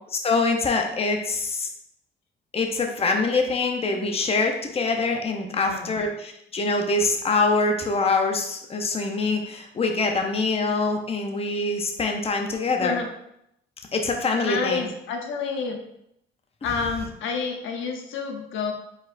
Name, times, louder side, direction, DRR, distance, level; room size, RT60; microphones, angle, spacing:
voice 1, 0.1-1.7 2.5-13.0 13.9-14.9, left 3 dB, 30° left, 3 dB, 0.7 m, -24 dB
voice 2, 5.5-6.0 12.8-13.1 14.4-15.8 16.6-18.7, left 5 dB, 80° left, 3 dB, 0.7 m, -29 dB
4.8 x 4.1 x 2.5 m, 0.78 s
cardioid pair, 90°, 20 cm